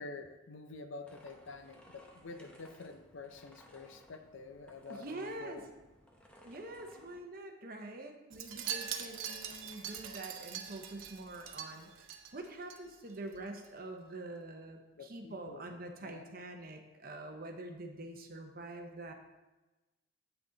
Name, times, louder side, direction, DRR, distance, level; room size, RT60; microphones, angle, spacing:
voice 1, 0.0-5.7 14.9-16.3, left 3 dB, 70° left, 8 dB, 0.6 m, -48 dB
sound 1, 1.0-7.2, equal, 5° left, 0.7 m, -60 dB
voice 2, 4.9-5.6 6.4-11.9 12.3-19.1, right 2 dB, 45° right, 4 dB, 0.8 m, -45 dB
Wind chime, 8.3-12.8 13.1-13.4 13.6-13.7, right 8 dB, 80° right, 0.8 m, -42 dB
8.1 x 6.0 x 3.9 m, 1.1 s
head